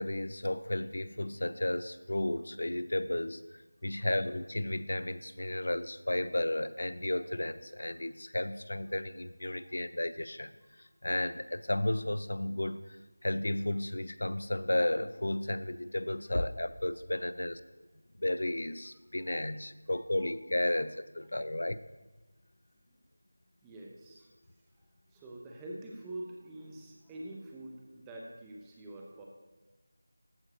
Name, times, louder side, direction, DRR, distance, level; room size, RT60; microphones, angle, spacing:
voice 1, 0.0-3.4 3.8-10.5 11.0-13.0 13.2-17.6 18.2-21.8, left 1 dB, 65° left, 15 dB, 0.4 m, -33 dB
voice 2, 9.4-9.8 19.2-19.4 19.9-20.3 20.8-20.9 23.6-24.3 25.1-29.3, right 1 dB, 10° right, -1 dB, 0.7 m, -46 dB
13.5 x 4.8 x 4.1 m, 1.2 s
figure-of-eight pair, 170°, 0 cm